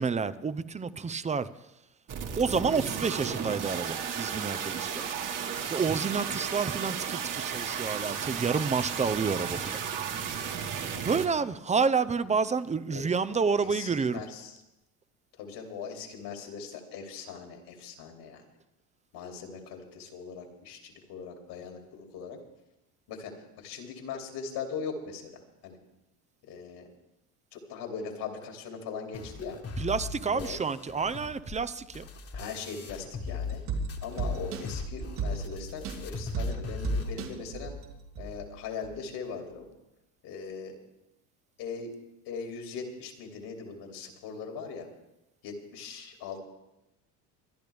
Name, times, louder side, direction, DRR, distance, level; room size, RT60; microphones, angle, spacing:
voice 1, 0.0-1.5 2.4-5.0 5.7-9.8 11.0-14.2 29.8-32.1, right 5 dB, 15° right, 14 dB, 0.6 m, -29 dB
sound 1, 2.1-11.3, right 7 dB, 45° right, 1.9 m, -34 dB
voice 2, 13.3-14.6 15.4-18.4 19.1-22.4 23.1-25.8 26.4-26.9 27.5-29.6 30.3-30.6 32.3-33.6 34.0-37.7 38.2-39.7 40.2-40.8 41.6-41.9 42.3-44.9 45.4-46.4, left 5 dB, 65° left, 2 dB, 3.0 m, -40 dB
sound 2, 29.1-33.6 33.9-37.1, left 5 dB, 35° left, 1.7 m, -40 dB
sound 3, 33.3-38.5 38.8-38.9, right 3 dB, 70° right, 3.0 m, -35 dB
25.0 x 10.5 x 3.5 m, 0.93 s
supercardioid pair, 85°, 43 cm